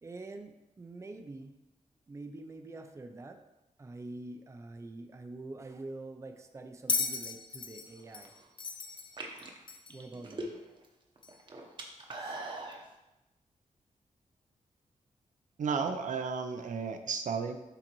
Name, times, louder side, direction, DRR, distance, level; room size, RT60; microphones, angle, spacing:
voice 1, 0.0-1.6 2.1-3.4 3.8-8.3 9.9-10.5 12.2-12.4, right 2 dB, 20° right, 6 dB, 0.5 m, -45 dB
Bell, 6.9-10.1 11.2-11.3, left 4 dB, 40° left, 0.5 m, -36 dB
sound 1, 8.0-8.4 9.0-10.9 11.2-12.8, right 2 dB, 40° right, 0.9 m, -41 dB
voice 2, 15.6-17.6, right 5 dB, 70° right, 7 dB, 0.6 m, -33 dB
11.5 x 3.9 x 3.0 m, 0.98 s
wide cardioid pair, 165°, 13 cm